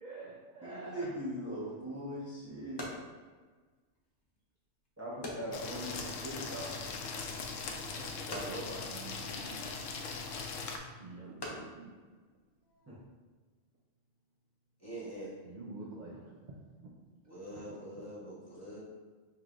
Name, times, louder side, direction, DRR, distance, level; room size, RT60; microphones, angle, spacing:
voice 1, 0.0-1.1 5.3-5.4 5.6-5.7 8.3-9.9 11.0-11.9 15.4-16.3 17.5-17.7, right 3 dB, 55° right, -3 dB, 0.5 m, -48 dB
voice 2, 0.6-2.8 5.0-6.7 12.9-13.0, equal, 15° right, -10 dB, 0.6 m, -40 dB
sound 1, 1.7-13.1, left 1 dB, 30° left, 0.5 m, -49 dB
sound 2, 5.5-10.8, left 4 dB, 80° left, 1.0 m, -40 dB
voice 3, 7.9-8.9 14.8-15.3 17.2-18.8, right 1 dB, 15° left, -8 dB, 1.2 m, -44 dB
5.6 x 3.2 x 2.4 m, 1.4 s
omnidirectional pair, 1.3 m